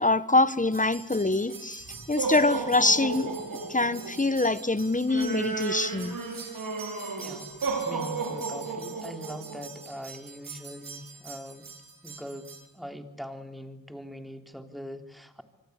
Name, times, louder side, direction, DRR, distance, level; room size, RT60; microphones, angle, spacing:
voice 1, 0.0-3.3 3.7-6.2, left 2 dB, 25° left, 14 dB, 1.4 m, -25 dB
sound 1, 0.7-12.6, right 4 dB, 85° right, 5.0 m, -35 dB
voice 2, 7.2-7.5 7.8-11.7 12.0-15.4, equal, ahead, 6 dB, 3.7 m, -42 dB
27.0 x 25.0 x 8.4 m, 1.0 s
cardioid pair, 65°, 32 cm